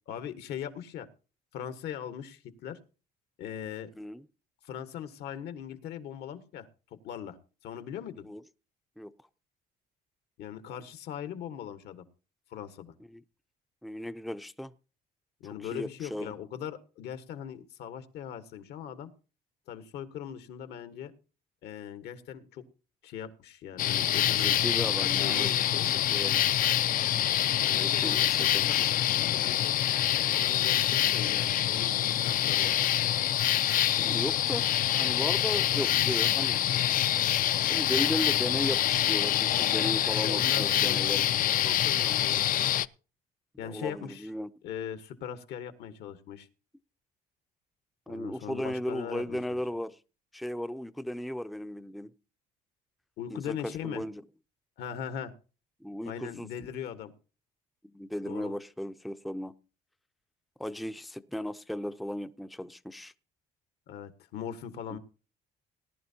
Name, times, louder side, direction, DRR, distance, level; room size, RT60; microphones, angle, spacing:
voice 1, 0.1-1.1 1.5-2.8 3.4-3.9 4.6-6.7 7.0-7.4 7.6-8.3 10.4-12.0 12.5-12.9 15.4-19.1 19.7-21.1 21.6-22.6 23.0-24.6 25.0-25.9 27.6-29.7 30.3-32.7 40.2-41.3 41.6-42.7 43.6-44.3 44.6-46.5 48.1-49.6 53.2-54.0 54.8-55.3 56.0-57.1 58.2-58.5 63.9-65.0, left 9 dB, 75° left, 1.5 m, -40 dB
voice 2, 3.9-4.3 8.2-8.4 9.0-9.1 13.1-13.2 13.8-14.7 15.4-16.3 24.3-25.5 25.9-26.4 27.7-28.9 34.0-34.7 35.0-36.7 37.7-41.3 43.6-44.5 48.1-50.0 50.3-52.1 53.3-54.2 55.8-56.5 57.8-59.5 60.6-63.1 64.9-65.0, equal, ahead, 0.5 m, -36 dB
sound 1, 23.8-42.9, left 12 dB, 55° left, 0.5 m, -26 dB
18.5 x 11.0 x 2.8 m
cardioid pair, 110°, 17 cm